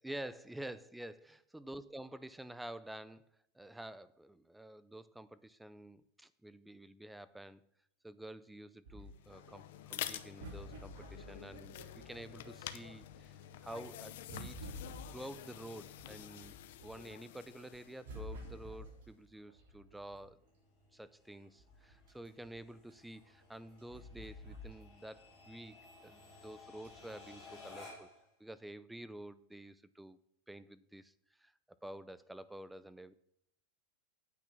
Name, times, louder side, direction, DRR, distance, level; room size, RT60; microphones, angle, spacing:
voice 1, 0.0-7.6 8.0-14.6 15.1-16.5 16.8-20.4 20.9-28.1 28.4-30.2 30.5-31.1 31.4-31.5 31.8-33.1, right 1 dB, 5° right, 16 dB, 0.4 m, -49 dB
sound 1, 8.8-12.6 13.0-17.1 17.5-20.4 21.0-21.1 21.3-25.2 25.5-25.6 26.8-27.1 27.8-27.9, equal, 70° right, 4.1 m, -50 dB
sound 2, 9.1-19.0, left 12 dB, 60° left, 0.7 m, -49 dB
sound 3, 19.0-28.3, left 3 dB, 15° left, 5.2 m, -58 dB
9.2 x 8.2 x 5.9 m, 0.72 s
supercardioid pair, 165°, 0 cm